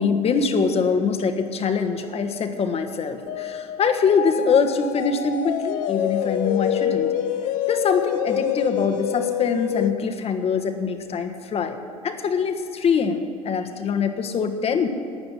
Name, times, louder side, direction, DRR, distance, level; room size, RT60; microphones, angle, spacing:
voice 1, 0.0-7.1 7.7-11.8 12.0-14.9, left 5 dB, 35° left, 7 dB, 1.4 m, -23 dB
sound 1, 3.3-9.9, left 10 dB, 50° left, 0.9 m, -26 dB
13.0 x 9.6 x 9.3 m, 2.3 s
figure-of-eight pair, 70°, 18 cm